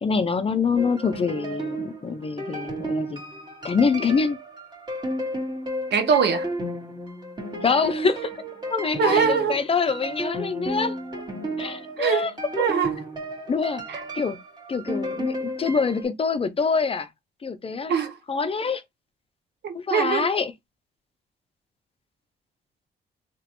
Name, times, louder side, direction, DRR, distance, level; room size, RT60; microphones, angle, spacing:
voice 1, 0.0-3.2 3.6-4.4 7.6-8.3 8.7-11.0 11.6-12.3 13.5-13.8 14.2-14.4 14.7-17.1 17.4-17.9 18.3-18.8 19.7-20.5, left 5 dB, 30° left, 0.5 m, -25 dB
sound 1, 0.8-16.0, right 1 dB, 25° right, 1.7 m, -33 dB
voice 2, 5.9-6.5 9.0-9.6 12.0-12.3 12.6-13.0 13.9-14.0 17.9-18.1 19.6-20.3, right 6 dB, 70° right, 0.9 m, -23 dB
3.0 x 3.0 x 2.9 m
cardioid pair, 100°, 18 cm